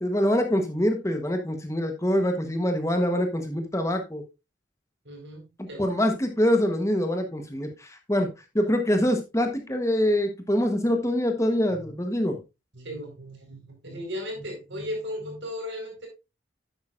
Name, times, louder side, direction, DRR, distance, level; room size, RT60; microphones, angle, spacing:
voice 1, 0.0-4.2 5.8-8.3 8.5-12.4, equal, 15° left, 5 dB, 1.0 m, -25 dB
voice 2, 5.0-5.9 12.7-16.1, left 1 dB, 70° right, 2 dB, 4.6 m, -36 dB
10.5 x 8.7 x 2.5 m, 0.25 s
head